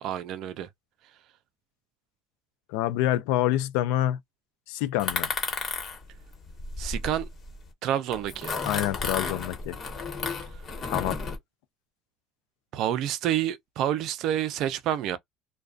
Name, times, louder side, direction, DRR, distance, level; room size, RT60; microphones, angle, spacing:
voice 1, 0.0-0.7 6.8-7.3 7.8-8.6 10.5-10.6 12.7-15.2, right 11 dB, 65° right, 0.5 m, -28 dB
voice 2, 2.7-4.2 4.7-5.3 8.7-9.8 10.9-11.3, left 13 dB, 85° left, 0.4 m, -27 dB
sound 1, 5.0-7.6 8.1-11.4, left 4 dB, 40° left, 1.1 m, -33 dB
2.4 x 2.2 x 2.4 m
supercardioid pair, 105°, 0 cm